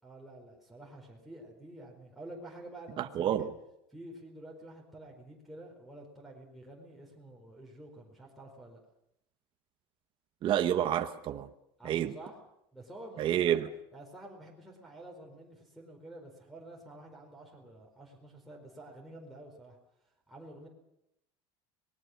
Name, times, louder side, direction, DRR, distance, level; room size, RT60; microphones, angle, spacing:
voice 1, 0.0-3.5 3.9-8.8 11.8-12.4 12.7-13.6 13.9-19.8 20.3-20.7, right 1 dB, ahead, 4.3 m, -49 dB
voice 2, 3.0-3.5 10.4-11.5 11.8-12.1 13.2-13.6, right 10 dB, 45° right, 1.2 m, -29 dB
25.5 x 20.0 x 6.4 m
cardioid pair, 135°, 12 cm